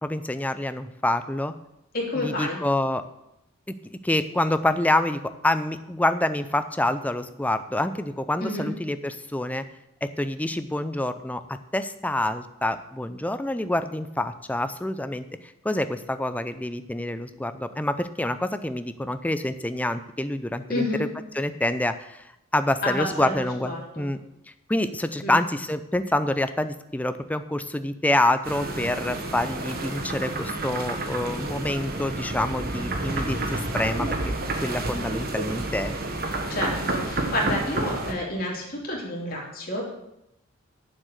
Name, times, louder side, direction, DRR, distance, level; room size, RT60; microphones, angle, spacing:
voice 1, 0.0-1.5 2.1-3.0 3.7-9.6 10.0-21.1 21.3-22.3 22.5-24.2 24.7-34.3 34.6-36.0, left 1 dB, 5° left, 10 dB, 0.4 m, -27 dB
voice 2, 1.9-2.6 8.4-8.7 20.7-21.0 22.8-24.1 25.2-25.4 36.5-39.8, left 1 dB, 45° left, -3 dB, 3.2 m, -29 dB
sound 1, 28.4-38.1, right 2 dB, 45° right, 1.3 m, -30 dB
9.2 x 7.5 x 6.5 m, 0.86 s
head